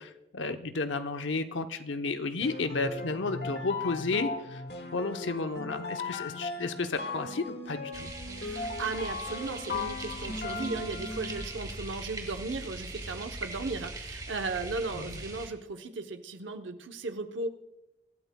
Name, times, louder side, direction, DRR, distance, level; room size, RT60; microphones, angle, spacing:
voice 1, 0.0-4.6 4.9-8.1 14.9-15.1, left 3 dB, 85° left, 8 dB, 0.9 m, -32 dB
sound 1, 2.4-11.6, left 3 dB, 55° left, 1.3 m, -37 dB
sound 2, 7.9-15.5, right 2 dB, 20° right, 1.6 m, -41 dB
voice 2, 8.4-17.5, right 3 dB, 90° right, 6 dB, 0.9 m, -36 dB
24.5 x 13.0 x 2.3 m, 0.92 s
head